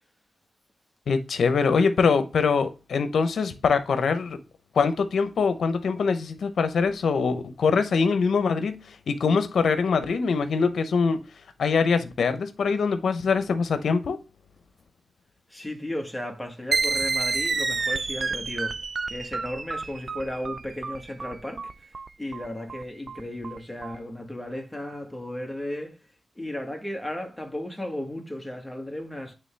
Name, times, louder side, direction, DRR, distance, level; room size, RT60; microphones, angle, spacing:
voice 1, 1.1-4.4 4.7-11.2 11.6-14.2, left 5 dB, 80° left, 0.8 m, -23 dB
voice 2, 15.5-21.7 22.2-26.0 26.3-29.3, left 1 dB, 5° left, 1.6 m, -35 dB
sound 1, 16.7-24.0, right 4 dB, 50° right, 0.4 m, -29 dB
9.1 x 3.6 x 3.4 m
cardioid pair, 75°, 0 cm